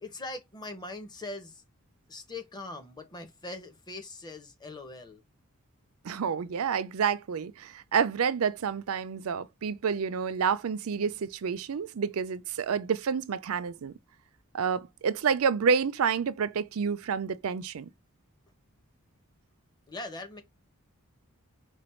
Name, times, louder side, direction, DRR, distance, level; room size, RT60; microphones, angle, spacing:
voice 1, 0.0-1.6 2.1-5.2 19.9-20.4, left 2 dB, 20° left, 1.0 m, -41 dB
voice 2, 6.0-14.0 14.5-17.9, right 6 dB, 70° right, 0.4 m, -29 dB
5.1 x 2.3 x 4.3 m
head